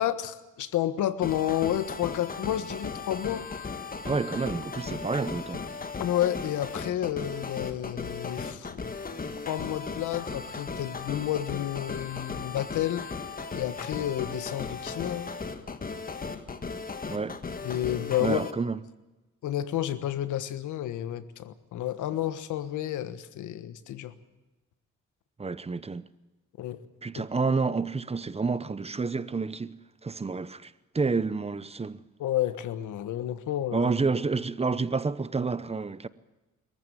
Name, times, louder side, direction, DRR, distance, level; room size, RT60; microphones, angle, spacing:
voice 1, 0.0-3.5 6.0-8.9 9.5-13.1 13.5-15.3 17.6-18.4 19.4-24.1 26.6-26.8 27.1-27.2 32.2-33.9, left 12 dB, 80° left, 1.4 m, -30 dB
sound 1, 1.2-18.5, left 4 dB, 30° left, 1.7 m, -37 dB
voice 2, 4.0-5.6 17.1-17.4 18.2-18.8 25.4-26.1 27.0-32.0 33.7-36.1, right 4 dB, 20° right, 0.9 m, -29 dB
22.0 x 15.0 x 9.3 m
cardioid pair, 90°, 30 cm